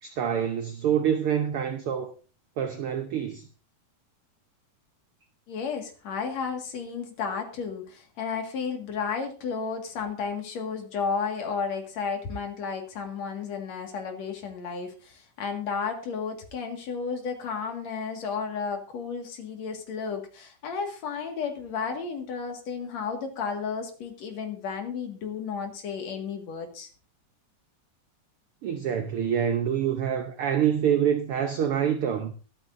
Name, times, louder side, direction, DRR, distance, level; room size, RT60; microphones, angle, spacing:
voice 1, 0.0-2.1 2.6-3.5 28.6-32.3, right 8 dB, 85° right, 1.2 m, -26 dB
voice 2, 5.5-26.9, left 5 dB, 60° left, 3.0 m, -33 dB
22.5 x 8.9 x 2.6 m
omnidirectional pair, 3.7 m